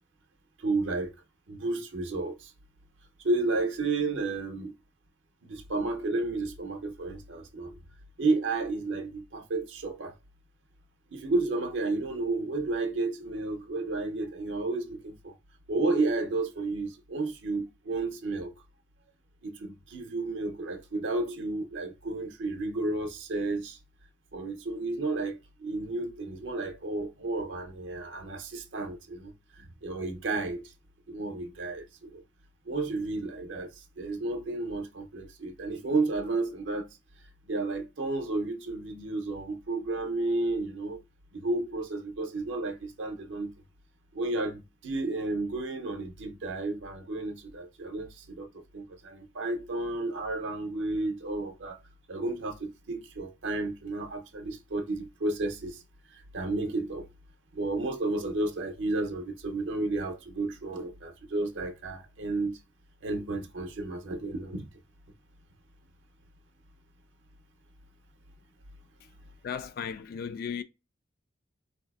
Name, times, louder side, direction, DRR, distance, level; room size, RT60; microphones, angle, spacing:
voice 1, 0.6-1.2 1.5-2.5 3.2-4.7 5.4-7.8 8.2-10.1 11.1-15.3 15.7-18.6 19.4-23.8 24.3-30.7 31.1-32.2 32.7-36.9 37.5-41.0 41.3-43.5 44.1-51.8 52.1-55.8 56.1-57.1 57.5-62.6 63.0-64.7, right 2 dB, 75° right, 0.5 m, -32 dB
voice 2, 69.4-70.6, left 7 dB, 55° left, 0.3 m, -36 dB
4.0 x 2.7 x 2.2 m
head